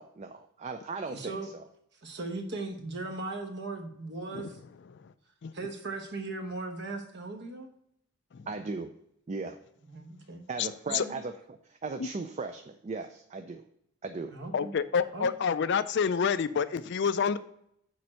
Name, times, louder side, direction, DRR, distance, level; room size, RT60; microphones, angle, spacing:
voice 1, 0.0-1.6 8.5-8.9 9.3-9.6 10.5-11.3 11.7-13.6 14.0-14.3, right 3 dB, 30° right, 7 dB, 0.4 m, -37 dB
voice 2, 1.1-1.5 2.0-4.6 5.5-7.7 9.9-10.4 10.9-11.2 14.3-14.7 15.1-15.3, right 3 dB, 55° right, 5 dB, 1.1 m, -38 dB
voice 3, 14.5-17.4, left 6 dB, 55° left, 14 dB, 0.4 m, -28 dB
6.9 x 4.4 x 6.3 m, 0.74 s
head